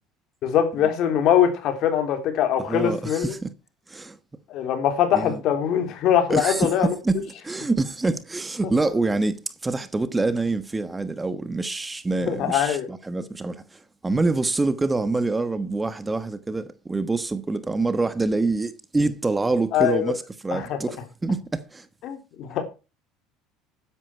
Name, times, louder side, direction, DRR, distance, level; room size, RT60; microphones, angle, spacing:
voice 1, 0.4-3.3 4.5-6.9 12.3-12.9 19.7-20.1 20.5-20.8 22.0-22.6, left 9 dB, 60° left, 3.5 m, -22 dB
voice 2, 2.6-3.5 3.9-4.2 5.1-5.4 6.3-21.9, right 3 dB, 15° right, 1.2 m, -26 dB
12.5 x 10.5 x 4.5 m
supercardioid pair, 100°, 0 cm